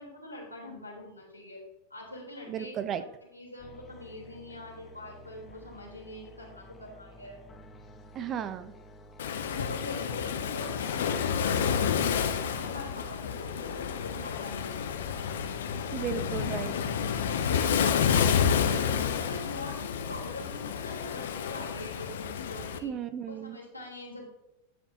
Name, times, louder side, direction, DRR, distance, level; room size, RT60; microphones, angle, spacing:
voice 1, 0.0-1.6 1.9-2.9 3.2-7.4 9.4-15.0 18.4-22.9 23.3-24.3, left 1 dB, 85° left, -2 dB, 3.6 m, -44 dB
voice 2, 2.5-3.0 8.1-8.7 15.9-16.9 22.8-23.6, right 8 dB, 30° right, 11 dB, 0.7 m, -35 dB
sound 1, 3.6-15.2, left 3 dB, 20° left, 1.2 m, -51 dB
Waves surf, 9.2-22.8, left 7 dB, 60° left, 0.9 m, -29 dB
11.0 x 9.2 x 2.8 m, 0.85 s
figure-of-eight pair, 90°, 0 cm